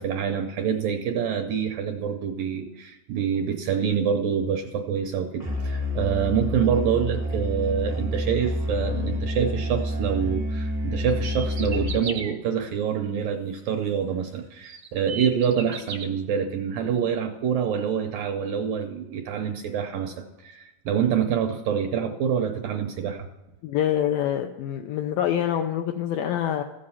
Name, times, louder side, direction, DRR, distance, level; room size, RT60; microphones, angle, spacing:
voice 1, 0.0-23.3, right 7 dB, 80° right, 4 dB, 2.0 m, -26 dB
Musical instrument, 5.4-12.2, left 1 dB, 10° right, 0.6 m, -28 dB
sound 1, 11.1-12.3 14.0-14.1 14.6-16.1, right 5 dB, 60° right, 1.0 m, -35 dB
voice 2, 23.6-26.6, left 10 dB, 85° left, 6 dB, 2.0 m, -25 dB
14.5 x 7.8 x 5.6 m, 1.1 s
omnidirectional pair, 4.7 m